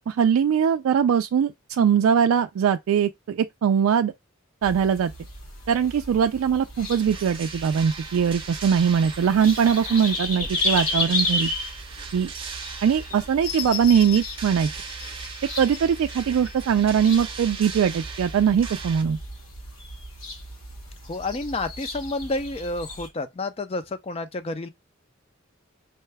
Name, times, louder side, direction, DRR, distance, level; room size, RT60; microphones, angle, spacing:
voice 1, 0.1-4.1 4.6-5.1 5.7-11.5 12.1-12.3 12.8-14.7 15.6-19.2, right 7 dB, 85° right, 0.3 m, -21 dB
sound 1, 4.6-23.1, left 2 dB, 85° left, 1.9 m, -34 dB
sound 2, 6.9-19.0, right 5 dB, 25° right, 0.7 m, -39 dB
sound 3, 13.4-17.3 17.9-18.0, left 10 dB, 55° left, 0.8 m, -37 dB
voice 2, 21.0-24.7, left 2 dB, 30° left, 0.4 m, -30 dB
5.4 x 2.2 x 3.3 m
head